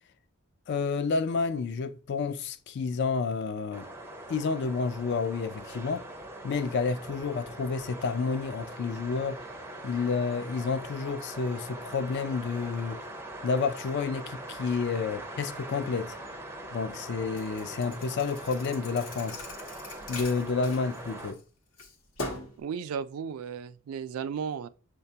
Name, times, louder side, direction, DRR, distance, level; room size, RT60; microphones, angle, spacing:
voice 1, 0.7-3.9 4.3-6.1 6.4-9.4 9.8-13.0 13.4-16.2 16.7-19.4 20.1-21.4, left 4 dB, 55° left, 0.3 m, -30 dB
sound 1, 3.7-21.3, right 1 dB, 10° right, 0.4 m, -42 dB
Thump thud, 17.4-21.4 21.8-22.6, left 2 dB, 75° left, 0.9 m, -41 dB
voice 2, 22.6-24.7, right 6 dB, 80° right, 0.3 m, -34 dB
6.5 x 2.2 x 2.7 m
head